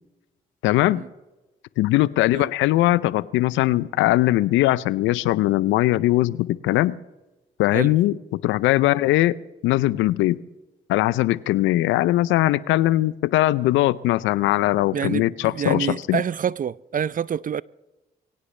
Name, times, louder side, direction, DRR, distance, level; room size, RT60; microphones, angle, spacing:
voice 1, 0.6-1.0 1.8-7.0 7.6-9.3 9.6-10.4 10.9-16.2, left 16 dB, 80° left, 0.5 m, -20 dB
voice 2, 14.9-17.6, right 8 dB, 45° right, 0.5 m, -27 dB
23.5 x 17.0 x 3.3 m
hypercardioid pair, 45°, 20 cm